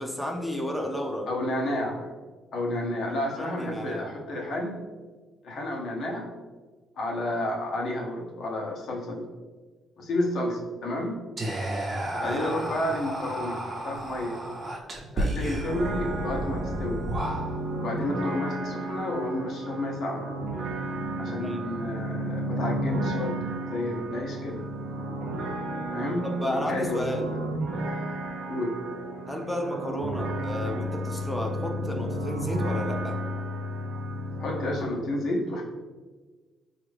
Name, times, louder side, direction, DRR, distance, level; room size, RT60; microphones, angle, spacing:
voice 1, 0.0-1.3 3.4-4.1 12.1-12.5 21.3-21.6 26.4-27.4 29.3-33.2, equal, 5° left, 1 dB, 0.6 m, -32 dB
voice 2, 1.3-2.1 2.5-4.8 5.4-6.3 7.0-9.3 10.0-11.2 12.2-14.4 15.1-17.1 17.8-20.3 21.2-24.7 25.9-27.4 28.5-28.8 34.4-35.6, left 1 dB, 70° left, 0 dB, 0.7 m, -31 dB
Whispering, 11.4-17.8, right 1 dB, 45° right, 0.7 m, -32 dB
sound 1, 15.6-34.8, right 1 dB, 75° right, 0.4 m, -32 dB
4.0 x 2.4 x 3.2 m, 1.3 s
cardioid pair, 80°, 0 cm